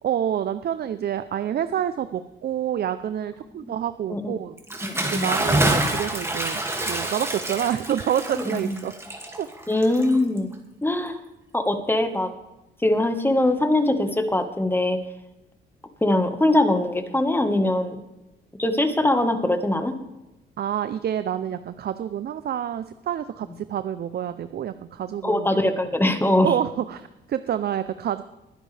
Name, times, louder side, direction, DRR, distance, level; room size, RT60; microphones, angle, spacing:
voice 1, 0.0-4.6 5.0-8.9 9.4-9.5 20.6-25.6 26.4-28.2, right 10 dB, 55° right, 12 dB, 0.6 m, -28 dB
Bathtub (filling or washing) / Splash splatter, 4.6-10.5, right 1 dB, 15° right, 2.2 m, -27 dB
voice 2, 4.8-5.2 8.6-8.7 9.7-10.5 10.8-11.2 11.5-12.3 12.8-15.0 16.0-18.0 18.6-20.0 25.2-26.5, left 1 dB, 10° left, 8 dB, 1.4 m, -22 dB
21.5 x 10.0 x 3.4 m, 0.98 s
cardioid pair, 90°, 20 cm